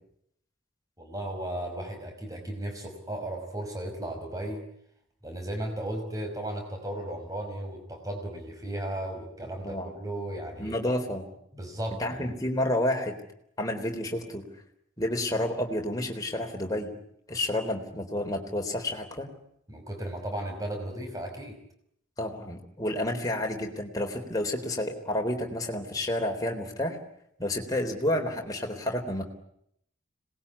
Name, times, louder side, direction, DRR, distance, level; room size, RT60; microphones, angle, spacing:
voice 1, 1.0-4.6 5.2-10.8 11.5-12.3 19.7-21.6, right 1 dB, 15° right, 3 dB, 5.5 m, -35 dB
voice 2, 10.6-11.3 12.0-13.2 13.6-14.4 15.0-16.9 17.3-19.3 22.2-27.0 27.4-29.2, left 1 dB, 20° left, 2 dB, 3.8 m, -30 dB
26.5 x 20.0 x 9.8 m, 0.74 s
head